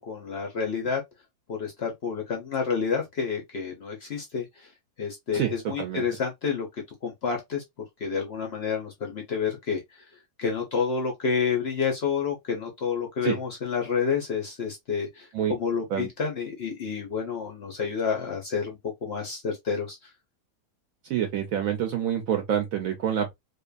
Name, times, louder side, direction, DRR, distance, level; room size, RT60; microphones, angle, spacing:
voice 1, 0.1-1.0 1.5-4.7 5.0-6.7 7.0-7.6 8.0-9.8 10.4-15.3 15.6-20.0, left 6 dB, 60° left, 0.7 m, -29 dB
voice 2, 21.0-23.3, right 9 dB, 70° right, 0.9 m, -27 dB
2.6 x 2.4 x 2.3 m
omnidirectional pair, 1.7 m